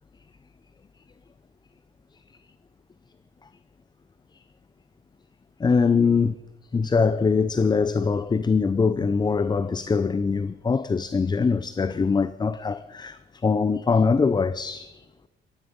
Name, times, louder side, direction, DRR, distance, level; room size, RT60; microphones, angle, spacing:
voice 1, 5.6-6.3 6.7-15.0, left 5 dB, 20° left, 0.5 m, -23 dB
16.0 x 13.0 x 5.1 m
cardioid pair, 90°, 20 cm